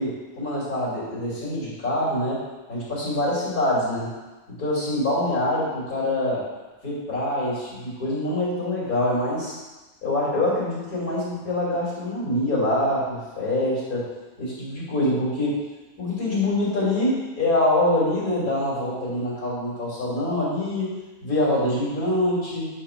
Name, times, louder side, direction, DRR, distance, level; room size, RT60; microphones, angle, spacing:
voice 1, 0.0-2.4 2.7-4.1 4.5-6.4 6.8-9.6 10.0-14.1 14.4-15.6 16.0-20.9 21.2-22.7, left 1 dB, 85° left, -7 dB, 3.4 m, -25 dB
9.1 x 3.8 x 5.8 m, 1.2 s
omnidirectional pair, 1.5 m